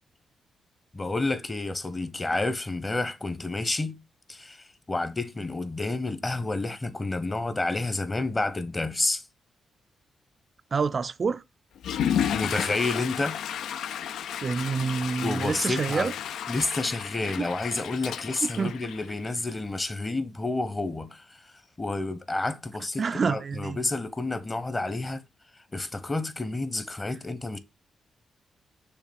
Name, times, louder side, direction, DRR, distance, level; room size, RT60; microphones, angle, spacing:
voice 1, 0.9-4.0 4.3-9.2 12.3-13.4 15.2-16.1 16.5-21.2 21.8-25.2 25.7-27.6, left 2 dB, 30° left, 1.0 m, -30 dB
voice 2, 10.7-11.4 14.4-16.1 17.4-17.5 18.4-18.9 23.0-23.8, right 5 dB, 50° right, 0.3 m, -28 dB
Water / Toilet flush, 11.7-19.5, left 9 dB, 80° left, 0.3 m, -32 dB
6.5 x 3.0 x 5.3 m
cardioid pair, 65°, 0 cm